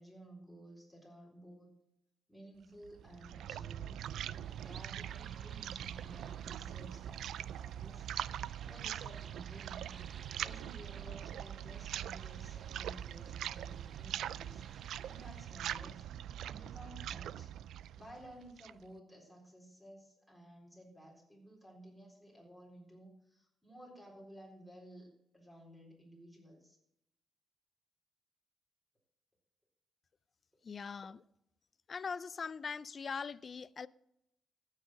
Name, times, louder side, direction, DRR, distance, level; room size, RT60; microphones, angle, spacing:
voice 1, 0.0-1.7 2.3-8.1 8.6-10.0 10.4-16.1 16.4-17.5 17.9-26.8, right 1 dB, 5° right, 3.9 m, -55 dB
sound 1, 2.8-18.9, right 11 dB, 80° right, 0.3 m, -42 dB
sound 2, 3.9-16.1, right 6 dB, 50° right, 0.7 m, -59 dB
voice 2, 30.6-31.2 31.9-33.9, left 5 dB, 35° left, 0.4 m, -41 dB
14.5 x 6.5 x 6.2 m
cardioid pair, 120°, 0 cm